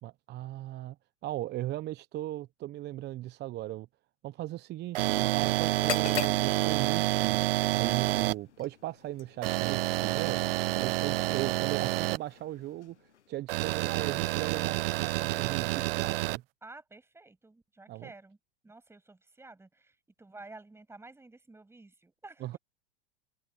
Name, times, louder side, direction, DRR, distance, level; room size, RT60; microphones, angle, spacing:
voice 1, 0.0-0.9 1.2-3.9 4.2-7.4 7.7-10.4 10.7-16.4 17.9-18.1 22.4-22.6, right 15 dB, 30° right, 1.0 m, -38 dB
sound 1, 4.9-8.3 9.4-12.2 13.5-16.4, right 18 dB, 60° right, 0.5 m, -28 dB
sound 2, 5.7-13.5, left 8 dB, 85° left, 1.1 m, -43 dB
voice 2, 16.6-18.4 18.6-22.6, right 2 dB, 5° right, 7.5 m, -51 dB
hypercardioid pair, 105°, 34 cm